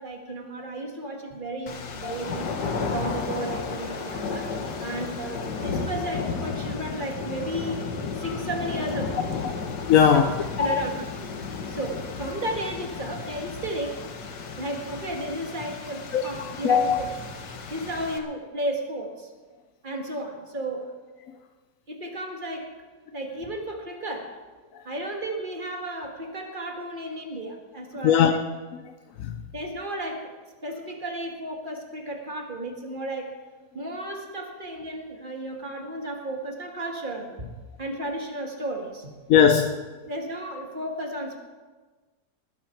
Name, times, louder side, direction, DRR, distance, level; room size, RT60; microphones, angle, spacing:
voice 1, 0.0-2.5 2.9-4.5 4.8-7.9 8.1-9.5 10.1-10.2 10.6-11.3 11.7-14.1 14.6-17.1 17.7-19.3 19.8-20.9 21.9-22.7 23.1-24.4 24.9-28.4 29.5-30.3 30.6-33.3 33.7-37.5 37.8-39.1 40.0-41.4, right 1 dB, 30° right, 2 dB, 2.1 m, -33 dB
sound 1, 1.7-18.2, left 5 dB, 80° left, 1.9 m, -33 dB
voice 2, 9.9-10.3 10.6-10.9 16.1-16.2 16.6-17.0 28.0-28.3 29.2-29.3 39.3-39.7, left 8 dB, 60° left, 6 dB, 1.0 m, -18 dB
20.0 x 12.0 x 4.6 m, 1.3 s
omnidirectional pair, 1.8 m